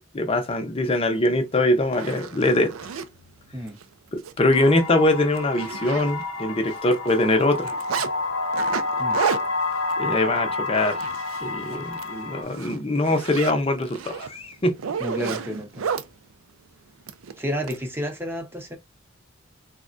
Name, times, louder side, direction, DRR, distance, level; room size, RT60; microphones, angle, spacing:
voice 1, 0.1-2.7 4.1-7.7 10.0-11.0 11.4-14.7, left 1 dB, 30° left, 0.6 m, -22 dB
Zipper (clothing), 1.3-1.4 1.8-3.1 3.7-3.8 4.2-4.3 4.7-4.8 5.1-6.4 6.7-8.1 8.5-11.5 11.8-12.1 12.4-16.1 17.1-17.8, right 6 dB, 90° right, 0.4 m, -32 dB
sound 1, 4.5-12.4, left 3 dB, 80° left, 0.7 m, -29 dB
voice 2, 15.0-15.9 17.4-18.8, equal, 10° right, 0.7 m, -31 dB
3.5 x 2.1 x 2.5 m
head